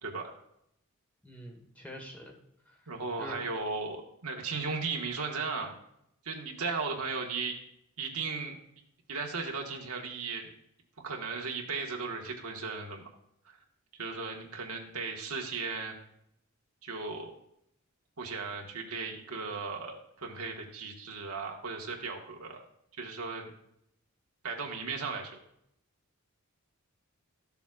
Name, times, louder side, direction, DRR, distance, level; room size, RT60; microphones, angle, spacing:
voice 1, 0.0-0.4 2.9-5.8 6.2-7.6 8.0-8.6 9.1-10.5 11.0-13.0 13.4-13.6 14.0-16.0 16.8-17.3 18.2-22.6 23.0-23.5 24.4-25.4, right 4 dB, 85° right, 1 dB, 1.4 m, -36 dB
voice 2, 1.2-2.4 2.6-2.9 3.2-3.4, equal, 5° left, 0 dB, 1.3 m, -45 dB
13.5 x 7.1 x 2.4 m, 0.75 s
head